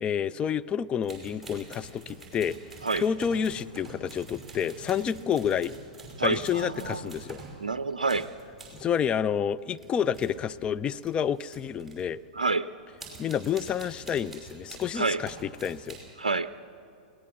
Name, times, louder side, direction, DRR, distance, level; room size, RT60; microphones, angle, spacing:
voice 1, 0.0-2.6 3.0-5.7 6.2-7.4 8.8-12.2 13.2-16.0, left 8 dB, 25° left, 14 dB, 0.4 m, -29 dB
sound 1, 1.0-7.6 8.0-8.9 9.6-10.5 10.9-12.1 13.0-15.0 15.2-16.0, right 3 dB, 5° right, 5.7 m, -46 dB
voice 2, 6.2-7.1 7.6-8.3 12.3-12.7 15.0-15.2 16.2-16.5, right 3 dB, 85° right, 14 dB, 0.4 m, -28 dB
21.5 x 18.0 x 7.1 m, 2.6 s
figure-of-eight pair, 100°, 4 cm